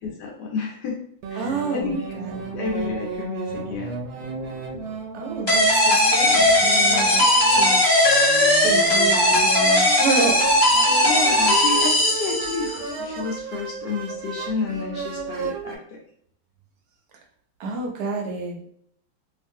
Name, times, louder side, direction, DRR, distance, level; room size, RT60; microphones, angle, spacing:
voice 1, 0.0-1.0 1.3-2.0 2.5-3.9 11.0-16.0, left 4 dB, 70° left, 0 dB, 1.1 m, -30 dB
sound 1, 1.2-15.8, right 4 dB, 90° right, 1.4 m, -33 dB
voice 2, 1.4-2.5 5.1-7.8 8.6-10.6 17.6-18.7, right 4 dB, 70° right, 0 dB, 1.0 m, -29 dB
sound 2, 5.5-12.8, left 1 dB, 20° left, 1.2 m, -18 dB
2.9 x 2.5 x 2.6 m, 0.66 s
omnidirectional pair, 2.1 m